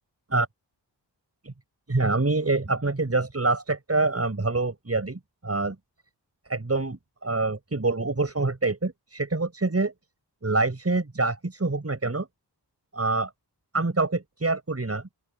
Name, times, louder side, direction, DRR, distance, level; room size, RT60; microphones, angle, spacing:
voice 1, 1.9-5.7 6.5-9.9 10.4-12.3 12.9-13.3 13.7-15.0, right 3 dB, 35° right, 6.7 m, -26 dB
open air
wide cardioid pair, 90°, 43 cm